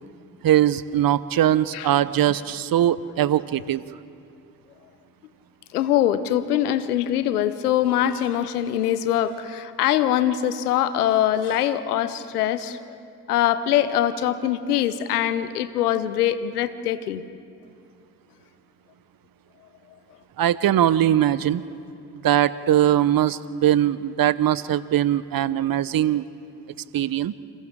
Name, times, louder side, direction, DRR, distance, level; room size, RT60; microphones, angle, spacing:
voice 1, 0.4-3.8 20.4-21.6 22.1-26.3 26.9-27.3, right 11 dB, 50° right, 17 dB, 0.9 m, -21 dB
voice 2, 5.7-12.8 13.3-17.2, left 11 dB, 90° left, 14 dB, 0.8 m, -23 dB
28.5 x 27.5 x 3.8 m, 2.4 s
hypercardioid pair, 40°, 45 cm